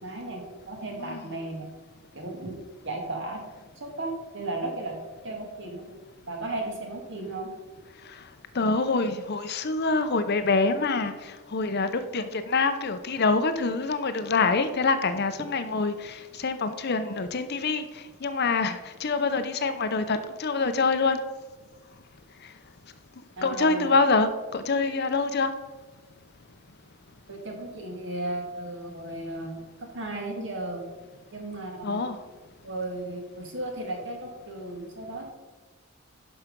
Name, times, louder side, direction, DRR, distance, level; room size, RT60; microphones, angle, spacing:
voice 1, 0.0-1.7 2.1-2.5 2.8-3.4 3.8-5.0 5.2-5.8 6.3-7.5 23.4-23.9 27.3-30.8 31.3-32.0 32.6-35.3, right 2 dB, 55° right, 2 dB, 1.9 m, -35 dB
voice 2, 8.5-21.2 23.4-25.5 31.8-32.2, left 3 dB, 50° left, 10 dB, 0.6 m, -26 dB
10.5 x 5.8 x 5.2 m, 1.3 s
head